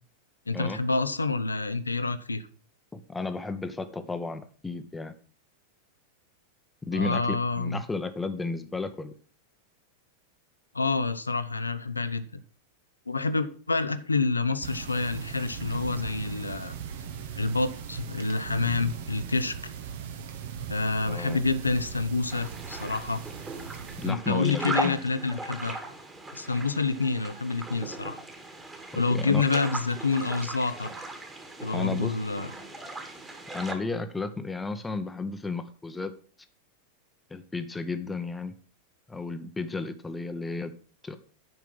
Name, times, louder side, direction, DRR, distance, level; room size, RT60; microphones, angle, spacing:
voice 1, 0.5-2.4 6.9-7.8 10.7-12.3 13.1-16.7 17.4-19.5 20.7-23.2 24.0-25.8 26.3-28.2 28.9-30.9 31.6-32.5, left 3 dB, 80° left, 12 dB, 0.7 m, -28 dB
voice 2, 2.9-5.1 6.9-9.1 21.0-21.4 24.0-25.0 28.9-29.4 31.7-32.2 33.5-36.1 37.3-38.5 39.1-40.7 41.0-41.2, left 3 dB, 10° left, 9 dB, 0.9 m, -33 dB
sound 1, 14.6-24.1, right 8 dB, 55° right, 1.3 m, -39 dB
sound 2, 22.3-33.7, right 2 dB, 15° right, 1.9 m, -38 dB
9.4 x 5.9 x 6.1 m, 0.41 s
figure-of-eight pair, 90°, 0 cm